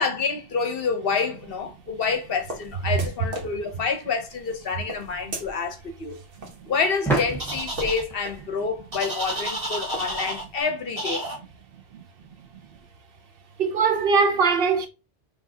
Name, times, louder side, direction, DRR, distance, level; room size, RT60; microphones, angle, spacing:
voice 1, 0.0-6.2 6.6-11.2, left 5 dB, 55° left, 0.9 m, -28 dB
sound 1, 1.4-10.6, right 1 dB, 85° right, 1.4 m, -40 dB
sound 2, 7.0-9.7, right 2 dB, ahead, 1.4 m, -31 dB
sound 3, 7.4-8.0 8.9-10.4 11.0-11.4, right 1 dB, 35° right, 1.9 m, -31 dB
voice 2, 13.6-14.9, right 5 dB, 60° right, 0.8 m, -21 dB
5.8 x 2.9 x 2.7 m
omnidirectional pair, 1.2 m